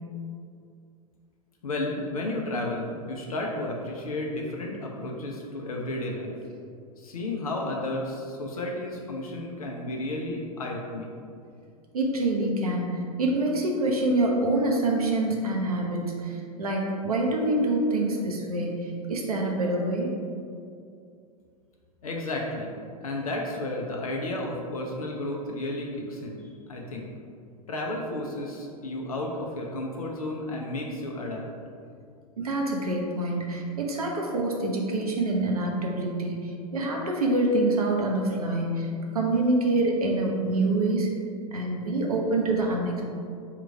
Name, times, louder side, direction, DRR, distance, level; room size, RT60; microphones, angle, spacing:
voice 1, 1.6-6.3 7.0-11.2 22.0-22.7 23.0-26.4 26.7-27.1 27.7-31.4, left 1 dB, 70° left, -1 dB, 0.6 m, -32 dB
voice 2, 11.9-20.1 32.4-41.1 41.5-43.0, right 2 dB, 75° right, 0 dB, 0.7 m, -26 dB
3.7 x 2.4 x 4.5 m, 2.4 s
figure-of-eight pair, 90°, 19 cm